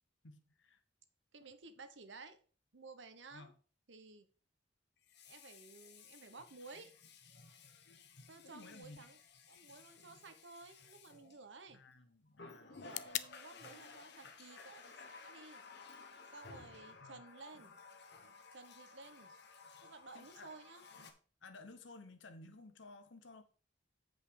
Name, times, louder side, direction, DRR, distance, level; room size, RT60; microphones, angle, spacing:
voice 1, 0.2-0.8 3.3-3.5 8.4-9.0 11.7-12.8 17.0-17.2 20.1-20.5 21.4-23.4, left 3 dB, 80° left, 1.0 m, -55 dB
voice 2, 1.3-2.4 2.7-3.5 3.9-4.3 5.2-6.9 8.3-9.2 9.5-11.8 12.6-15.6 16.3-17.7 18.5-19.3 19.8-20.9, right 3 dB, 70° right, 1.1 m, -55 dB
Water tap faucet, 1.4-1.5 5.0-11.8 12.3-21.1, left 4 dB, 60° left, 1.2 m, -56 dB
sound 1, 8.8-16.8, left 12 dB, 45° left, 0.4 m, -51 dB
8.1 x 5.3 x 5.1 m
head